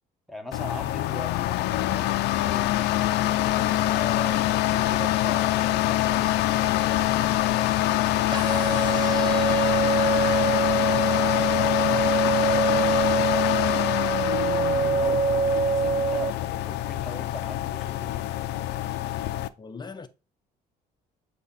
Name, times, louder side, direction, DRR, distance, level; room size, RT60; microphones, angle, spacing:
voice 1, 0.3-2.8 14.4-15.2 15.7-18.3, equal, ahead, 1.4 m, -42 dB
sound 1, 0.5-19.5, left 15 dB, 80° left, 0.5 m, -24 dB
sound 2, 8.3-16.3, right 5 dB, 25° right, 0.5 m, -25 dB
voice 2, 19.6-20.1, left 4 dB, 25° left, 0.8 m, -39 dB
8.1 x 3.0 x 4.0 m
cardioid pair, 110°, 17 cm